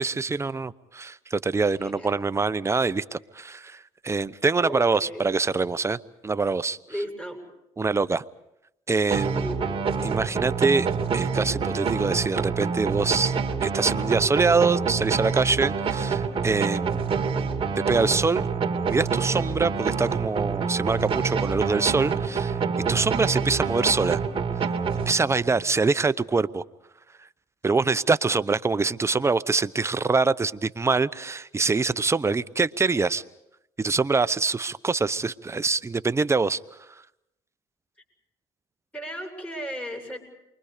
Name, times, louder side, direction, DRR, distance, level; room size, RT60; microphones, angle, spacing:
voice 1, 0.0-6.8 7.8-8.2 8.9-9.5 10.0-10.9 11.1-17.2 17.9-18.5 18.9-22.6 22.9-24.2 25.1-26.6 27.6-33.2 33.8-36.6, right 4 dB, 20° right, 15 dB, 0.8 m, -24 dB
voice 2, 1.6-2.1 4.6-5.4 6.9-7.4 9.4-9.8 38.9-40.2, equal, 10° left, 3 dB, 7.6 m, -35 dB
sound 1, 9.1-25.6, right 5 dB, 45° right, 2.8 m, -27 dB
29.0 x 23.5 x 5.0 m, 0.86 s
supercardioid pair, 85°, 13 cm